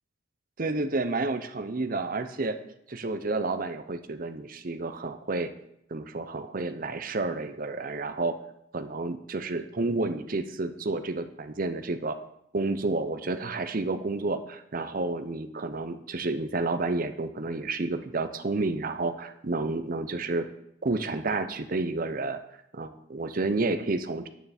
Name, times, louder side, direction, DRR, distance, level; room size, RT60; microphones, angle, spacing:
voice 1, 0.6-2.6 2.9-5.5 5.9-8.4 8.7-12.2 12.5-20.5 20.8-22.4 22.7-24.3, right 3 dB, 45° right, 9 dB, 0.7 m, -30 dB
9.2 x 9.1 x 4.3 m, 0.77 s
head